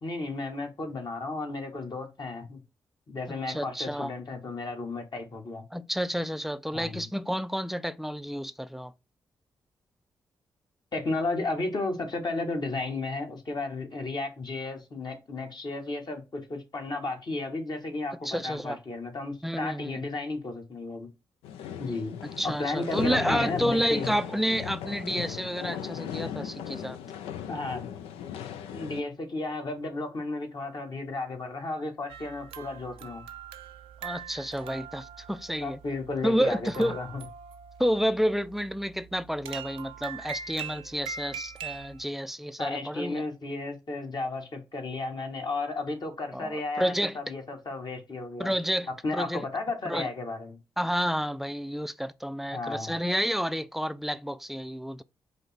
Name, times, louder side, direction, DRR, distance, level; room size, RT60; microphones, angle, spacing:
voice 1, 0.0-2.6 3.1-5.6 6.7-7.1 10.9-21.1 21.8-22.2 22.4-24.2 27.5-27.9 28.7-33.2 35.6-37.2 42.6-48.5 49.0-50.6 52.5-52.9, left 3 dB, 50° left, 1.4 m, -33 dB
voice 2, 3.5-4.1 5.7-8.9 18.1-18.8 19.4-20.0 22.2-27.0 34.0-35.8 36.2-37.0 37.8-43.2 46.3-47.2 48.4-49.4 49.8-50.1 50.8-55.0, equal, 5° right, 0.4 m, -30 dB
sound 1, 21.4-29.0, left 9 dB, 85° left, 0.4 m, -37 dB
sound 2, 32.1-42.0, right 7 dB, 85° right, 0.4 m, -42 dB
5.1 x 2.1 x 4.0 m
supercardioid pair, 45°, 10 cm